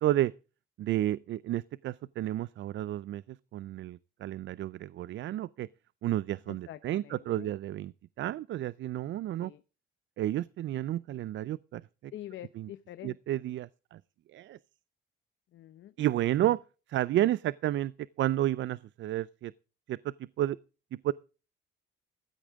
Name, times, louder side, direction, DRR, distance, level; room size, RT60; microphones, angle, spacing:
voice 1, 0.0-0.3 0.8-3.2 3.5-5.7 6.0-7.9 8.2-9.5 10.2-12.1 12.6-12.7 13.0-14.0 14.3-14.6 16.0-16.6 16.9-17.9 18.2-19.5 19.9-20.6 21.0-21.1, right 13 dB, 70° right, 0.5 m, -31 dB
voice 2, 6.5-7.5 9.4-9.6 12.1-13.2 15.5-15.9, left 13 dB, 75° left, 0.8 m, -46 dB
15.5 x 12.5 x 3.6 m
cardioid pair, 90°, 20 cm